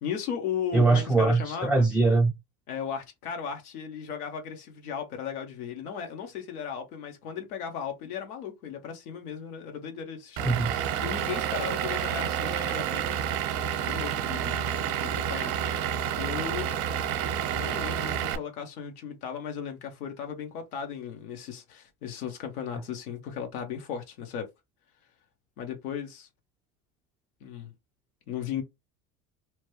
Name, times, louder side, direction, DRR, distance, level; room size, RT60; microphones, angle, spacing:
voice 1, 0.0-1.9 2.7-15.6 16.2-16.7 17.5-24.5 25.6-26.3 27.4-27.7 28.3-28.6, left 7 dB, 80° left, 0.9 m, -36 dB
voice 2, 0.7-2.3 10.4-10.8, right 3 dB, 5° right, 0.3 m, -22 dB
Vehicle / Engine, 10.4-18.4, right 9 dB, 55° right, 0.7 m, -29 dB
3.0 x 2.2 x 3.0 m
hypercardioid pair, 85°, 44 cm